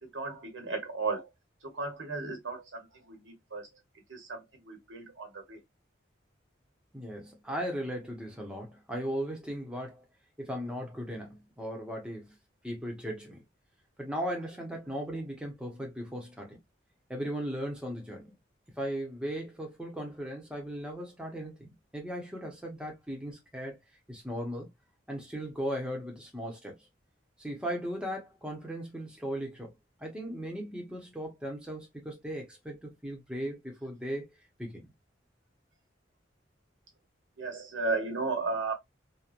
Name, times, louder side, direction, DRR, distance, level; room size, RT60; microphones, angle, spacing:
voice 1, 0.0-1.3 1.6-3.7 4.1-5.6 37.4-38.7, right 3 dB, 90° right, 1.2 m, -35 dB
voice 2, 6.9-10.0 10.4-12.3 12.6-13.4 14.0-16.6 17.1-18.4 18.8-23.8 24.1-24.7 25.1-26.9 27.4-29.7 30.0-34.3 34.6-34.8, equal, 5° right, 0.9 m, -37 dB
3.0 x 2.2 x 2.4 m
head